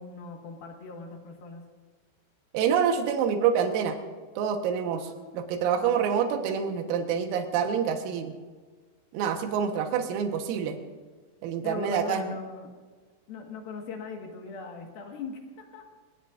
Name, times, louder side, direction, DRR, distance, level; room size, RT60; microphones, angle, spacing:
voice 1, 0.0-1.6 4.9-5.4 11.6-12.7 13.3-15.8, left 4 dB, 60° left, 2 dB, 2.9 m, -39 dB
voice 2, 2.5-4.0 4.4-5.0 5.3-8.3 9.1-10.8 11.4-12.3, right 7 dB, 85° right, 4 dB, 4.1 m, -27 dB
28.0 x 19.0 x 2.6 m, 1.4 s
omnidirectional pair, 6.0 m